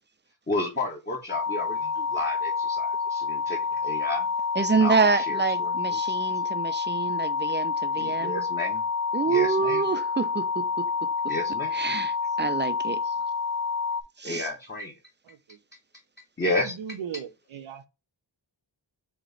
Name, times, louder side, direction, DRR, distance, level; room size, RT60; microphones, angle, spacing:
voice 1, 0.5-4.3 4.7-6.4 8.0-8.8 9.2-9.8 11.3-11.7 14.2-14.9 16.4-16.7, left 2 dB, 20° left, 0.9 m, -32 dB
sound 1, 1.3-14.0, left 5 dB, 40° left, 0.6 m, -28 dB
voice 2, 4.6-8.4 9.1-11.1 11.7-12.1 12.4-13.0 14.2-14.5, right 4 dB, 25° right, 0.5 m, -27 dB
voice 3, 15.3-15.6 16.6-17.9, right 7 dB, 90° right, 0.6 m, -38 dB
4.6 x 3.0 x 3.9 m
wide cardioid pair, 100°, 46 cm